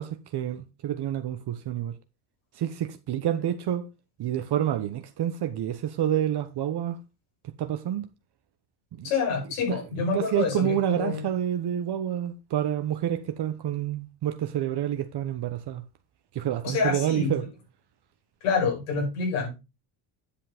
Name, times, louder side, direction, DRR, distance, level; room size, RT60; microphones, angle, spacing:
voice 1, 0.0-2.0 2.5-3.9 4.2-7.0 7.4-8.1 9.0-9.1 9.7-9.8 10.1-15.8 16.3-17.4, right 10 dB, 50° right, 1.1 m, -28 dB
voice 2, 9.0-11.3 16.6-17.3 18.4-19.6, left 5 dB, 85° left, 5.6 m, -27 dB
10.0 x 5.6 x 5.0 m
supercardioid pair, 85°, 50 cm